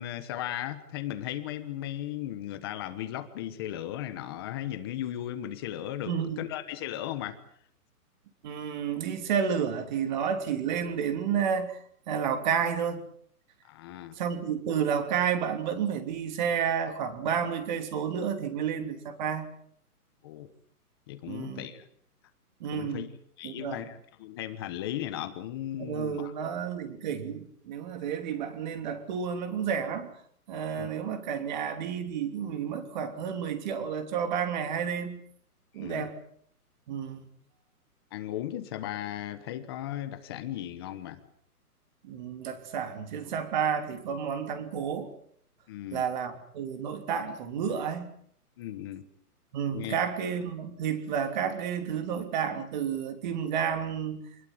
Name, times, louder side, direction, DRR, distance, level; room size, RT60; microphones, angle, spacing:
voice 1, 0.0-7.4 13.6-14.1 20.2-20.5 21.1-21.9 22.7-23.1 23.4-26.3 30.8-30.9 35.8-36.1 38.1-41.2 45.7-46.1 48.6-49.0 49.7-50.0, left 12 dB, 15° left, 9 dB, 1.2 m, -36 dB
voice 2, 6.1-6.4 8.4-11.8 12.1-13.1 14.2-19.5 21.3-21.7 22.6-23.1 23.4-23.8 25.8-30.1 30.5-35.2 35.7-36.2 36.9-37.2 42.0-45.1 45.9-48.1 49.5-54.2, right 7 dB, 30° right, 8 dB, 3.2 m, -31 dB
27.5 x 20.5 x 7.7 m, 0.64 s
hypercardioid pair, 170°, 46 cm